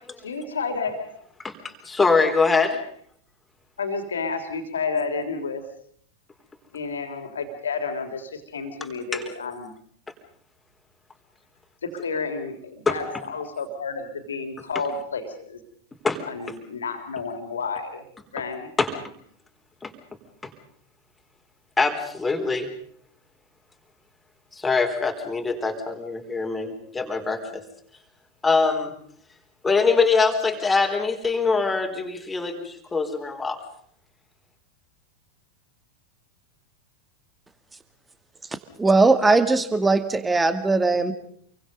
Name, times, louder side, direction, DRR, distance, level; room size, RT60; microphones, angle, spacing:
voice 1, 0.2-1.2 3.8-5.6 6.7-9.7 11.8-15.6 16.3-18.0 18.3-18.7, left 4 dB, 70° left, 6 dB, 3.4 m, -31 dB
voice 2, 1.8-2.8 9.1-9.2 12.9-13.0 16.0-16.2 18.8-18.9 19.8-19.9 20.4-20.5 21.8-22.7 24.6-27.6 28.4-28.9 29.6-33.6, left 4 dB, 10° left, 4 dB, 4.1 m, -23 dB
voice 3, 38.8-41.1, right 3 dB, 10° right, 11 dB, 2.2 m, -19 dB
28.5 x 23.5 x 5.4 m, 0.63 s
figure-of-eight pair, 90°, 0 cm